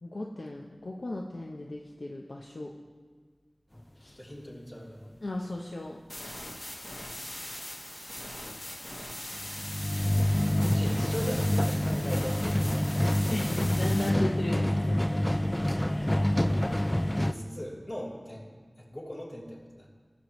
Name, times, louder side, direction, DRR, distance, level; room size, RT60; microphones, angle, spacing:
voice 1, 0.0-2.7 4.0-4.2 5.2-6.0 11.2-11.3 13.3-15.2 15.9-16.3, left 2 dB, 90° left, -1 dB, 0.7 m, -36 dB
voice 2, 4.1-5.2 10.7-12.4 14.8-15.3 17.2-18.5 18.8-19.9, equal, 60° left, -6 dB, 3.3 m, -40 dB
sound 1, 6.1-14.1, left 1 dB, 40° left, 1.3 m, -40 dB
sound 2, 9.4-17.3, left 1 dB, 20° left, 0.4 m, -27 dB
19.5 x 7.2 x 3.1 m, 1.5 s
wide cardioid pair, 50°, 0 cm